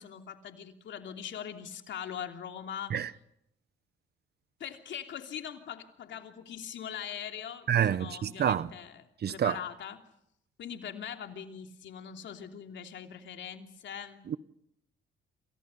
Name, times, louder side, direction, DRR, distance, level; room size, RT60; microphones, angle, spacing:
voice 1, 0.0-3.1 4.6-10.0 10.6-14.2, left 8 dB, 70° left, 3.0 m, -41 dB
voice 2, 7.7-8.7 9.2-9.6 14.3-14.4, right 9 dB, 55° right, 1.1 m, -27 dB
29.0 x 28.0 x 5.6 m
cardioid pair, 90°, 20 cm